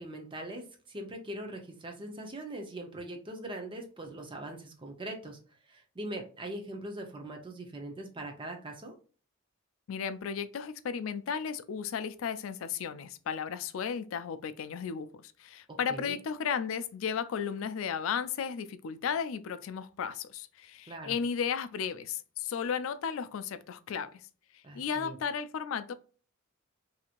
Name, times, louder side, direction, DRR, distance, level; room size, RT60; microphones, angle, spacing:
voice 1, 0.0-5.4 5.7-8.9 15.7-16.2 20.9-21.2 24.6-25.2, right 1 dB, 25° right, 0.7 m, -41 dB
voice 2, 9.9-24.1 24.7-25.9, left 7 dB, 70° left, 0.4 m, -34 dB
2.9 x 2.7 x 2.4 m
head